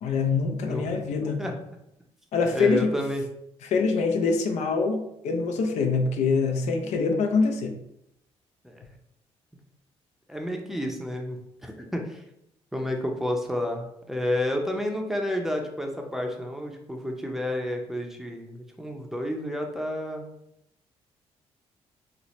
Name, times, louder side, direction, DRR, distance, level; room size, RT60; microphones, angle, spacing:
voice 1, 0.0-1.4 2.3-3.0 3.6-7.8, left 4 dB, 80° left, 5 dB, 0.5 m, -24 dB
voice 2, 0.6-1.6 2.5-3.2 8.6-8.8 10.3-12.2 12.7-20.3, left 1 dB, 5° right, 2 dB, 0.5 m, -30 dB
4.1 x 2.0 x 3.1 m, 0.78 s
cardioid pair, 100°, 12 cm